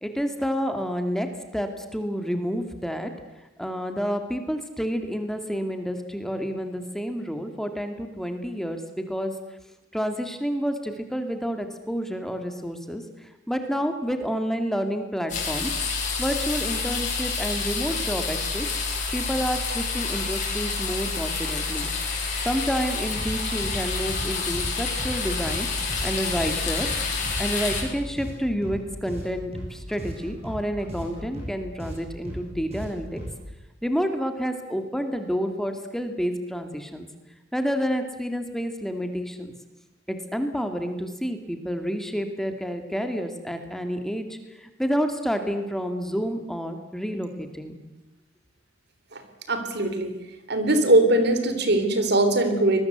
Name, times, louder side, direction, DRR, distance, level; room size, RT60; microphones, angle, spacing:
voice 1, 0.0-1.3 1.5-3.1 3.6-9.3 9.9-15.8 16.2-18.7 19.1-21.9 22.4-25.7 26.0-26.9 27.4-33.2 33.8-37.1 37.5-39.5 40.1-47.8, equal, ahead, 6 dB, 2.2 m, -29 dB
sound 1, 15.3-27.8, left 4 dB, 40° left, 7.8 m, -28 dB
sound 2, 23.1-33.5, equal, 35° right, 7.7 m, -38 dB
voice 2, 49.5-50.1 50.5-52.8, right 1 dB, 60° right, 8 dB, 3.6 m, -21 dB
25.0 x 21.0 x 8.0 m, 0.98 s
head